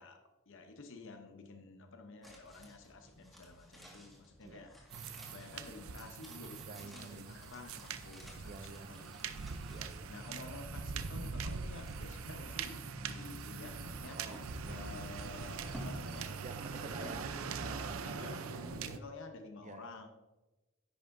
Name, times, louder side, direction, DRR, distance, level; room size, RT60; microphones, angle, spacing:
voice 1, 0.0-4.8 5.3-9.5 10.1-14.2 14.6-16.3 16.8-17.5 18.0-20.1, left 3 dB, 65° left, 0.9 m, -51 dB
sound 1, 2.2-17.4 17.7-17.8, equal, ahead, 1.8 m, -55 dB
sound 2, 4.9-19.0, right 4 dB, 75° right, 0.6 m, -42 dB
voice 2, 6.7-7.4 8.4-9.0 9.7-10.1 14.2-15.0 16.4-18.1 19.6-20.1, right 4 dB, 35° right, 0.5 m, -49 dB
10.5 x 8.9 x 2.6 m
head